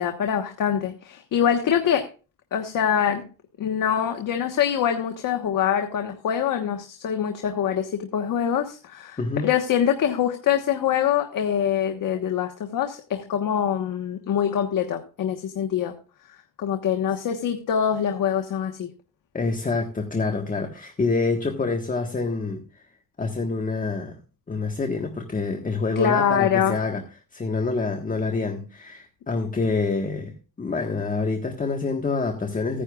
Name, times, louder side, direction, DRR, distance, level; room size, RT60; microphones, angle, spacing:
voice 1, 0.0-2.1 2.5-3.3 3.6-15.9 16.6-18.9 26.0-26.8, left 9 dB, 75° left, 1.3 m, -24 dB
voice 2, 19.3-22.6 23.2-24.2 24.5-32.8, left 3 dB, 25° left, 1.5 m, -27 dB
16.0 x 10.0 x 2.4 m
cardioid pair, 125°, 33 cm